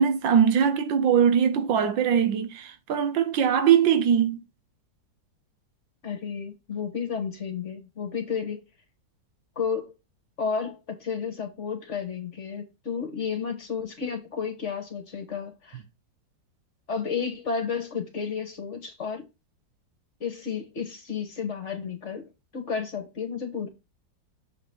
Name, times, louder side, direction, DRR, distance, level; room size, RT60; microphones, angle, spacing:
voice 1, 0.0-4.4, right 8 dB, 80° right, 1.6 m, -21 dB
voice 2, 6.0-8.6 9.5-9.9 10.4-15.8 16.9-19.2 20.2-23.7, left 6 dB, 40° left, 1.6 m, -32 dB
7.1 x 4.0 x 5.0 m
omnidirectional pair, 2.0 m